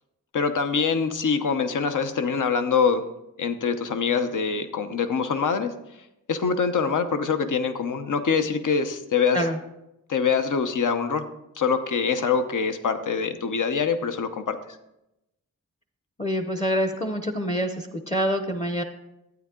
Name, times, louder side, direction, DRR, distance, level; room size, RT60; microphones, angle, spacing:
voice 1, 0.3-3.1 3.4-5.8 6.3-9.5 10.1-11.3 11.5-14.6, left 5 dB, 70° left, 9 dB, 0.9 m, -24 dB
voice 2, 16.2-18.8, equal, 20° left, 6 dB, 0.7 m, -26 dB
12.0 x 9.4 x 3.7 m, 0.88 s
wide cardioid pair, 110°, 32 cm